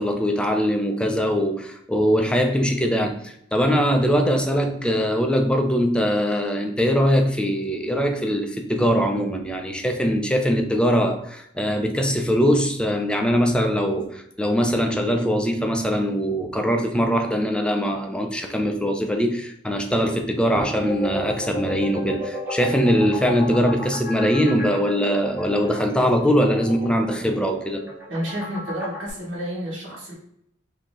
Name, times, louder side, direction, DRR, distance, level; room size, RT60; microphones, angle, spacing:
voice 1, 0.0-27.8, equal, 5° left, 4 dB, 0.5 m, -22 dB
sound 1, 20.6-29.1, equal, 10° right, 0.9 m, -33 dB
voice 2, 28.1-30.1, equal, 65° right, -6 dB, 1.8 m, -30 dB
5.0 x 2.8 x 3.6 m, 0.74 s
head